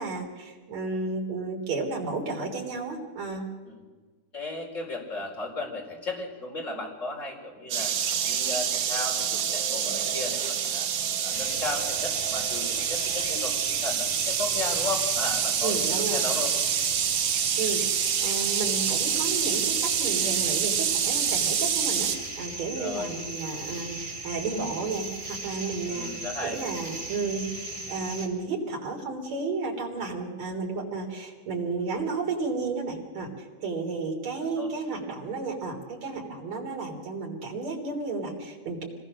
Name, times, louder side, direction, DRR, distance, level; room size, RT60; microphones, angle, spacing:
voice 1, 0.0-3.5 15.6-16.2 17.6-22.1 22.4-27.5 27.9-33.3 33.6-38.8, right 3 dB, 60° right, 1 dB, 4.7 m, -32 dB
voice 2, 4.3-7.9 8.3-10.9 11.2-16.5 22.7-23.2 25.9-26.6 34.6-34.7, left 3 dB, 25° left, 0 dB, 4.8 m, -35 dB
sound 1, 7.7-22.2, right 8 dB, 80° right, 3.1 m, -27 dB
sound 2, 11.3-28.3, right 2 dB, 35° right, 3.2 m, -38 dB
26.0 x 20.0 x 6.5 m, 1.4 s
omnidirectional pair, 3.5 m